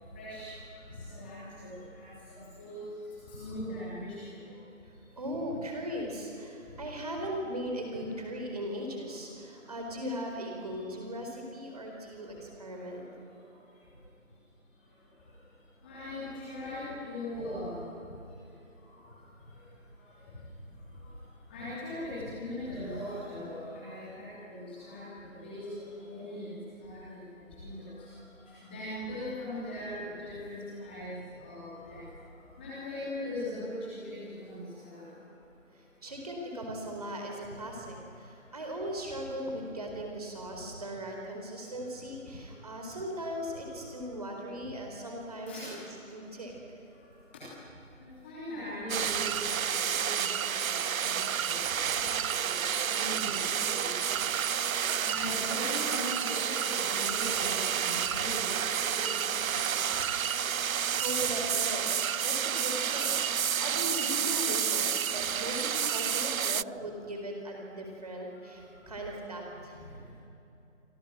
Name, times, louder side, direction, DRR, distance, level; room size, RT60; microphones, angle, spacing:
voice 1, 0.1-0.5 1.1-2.8 3.3-4.2 15.8-17.9 21.5-25.7 26.1-27.2 27.6-27.9 28.5-31.1 31.4-32.0 32.6-35.1 45.5-45.7 48.2-49.6 49.9-50.5 50.9-51.7 52.0-54.2 55.0-59.6 63.8-63.9 65.2-65.3, left 1 dB, 10° left, -9 dB, 2.9 m, -40 dB
voice 2, 4.9-13.1 35.7-45.8 46.1-46.8 60.6-70.0, equal, 30° right, 1 dB, 4.4 m, -38 dB
sound 1, 48.9-66.6, right 8 dB, 90° right, 0.5 m, -30 dB
27.0 x 26.0 x 7.6 m, 2.8 s
figure-of-eight pair, 170°, 40 cm